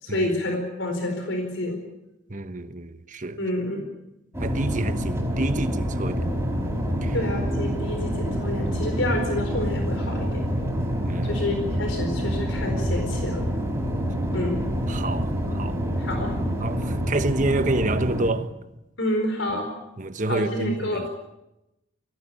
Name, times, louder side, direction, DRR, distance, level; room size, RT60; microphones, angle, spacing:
voice 1, 0.0-1.8 3.4-3.9 7.1-10.4 11.2-13.5 14.3-14.6 16.0-16.3 19.0-19.7 20.2-21.1, left 1 dB, 75° left, 4.6 m, -28 dB
voice 2, 2.3-3.4 4.4-6.2 7.0-7.1 11.0-11.3 14.9-15.8 16.6-18.5 20.0-21.1, right 2 dB, 40° right, 1.2 m, -28 dB
sound 1, 4.3-18.3, equal, 10° right, 4.6 m, -27 dB
24.0 x 17.0 x 8.8 m
head